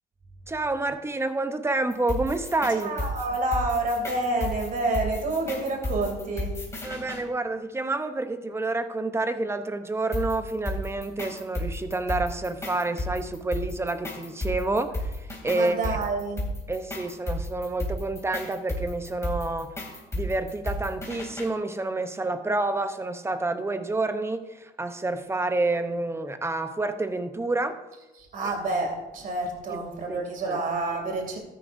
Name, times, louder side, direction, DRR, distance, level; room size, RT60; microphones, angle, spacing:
voice 1, 0.5-2.9 6.8-16.0 16.7-19.8 20.1-27.8 29.7-30.6, right 2 dB, 15° right, 9 dB, 0.8 m, -29 dB
sound 1, 1.9-7.2 10.1-21.5, left 1 dB, 15° left, 2.9 m, -33 dB
voice 2, 2.7-6.6 15.5-16.4 28.2-31.4, right 2 dB, 55° right, 2 dB, 2.8 m, -28 dB
13.5 x 10.0 x 2.6 m, 1.1 s
cardioid pair, 100°, 17 cm